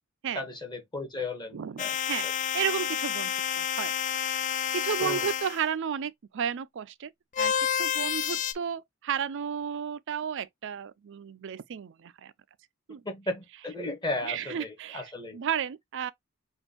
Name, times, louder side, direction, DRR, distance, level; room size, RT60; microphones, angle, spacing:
voice 1, 0.3-1.9 2.2-2.3 5.0-5.3 13.0-15.4, left 2 dB, 20° left, 1.4 m, -35 dB
voice 2, 1.5-2.3 2.5-3.9 4.3-4.4 4.7-7.1 7.4-12.3 12.9-13.0 14.2-16.1, right 8 dB, 60° right, 0.4 m, -33 dB
sound 1, 1.8-5.6 7.4-8.5, left 9 dB, 35° left, 0.4 m, -29 dB
6.1 x 2.5 x 2.9 m
head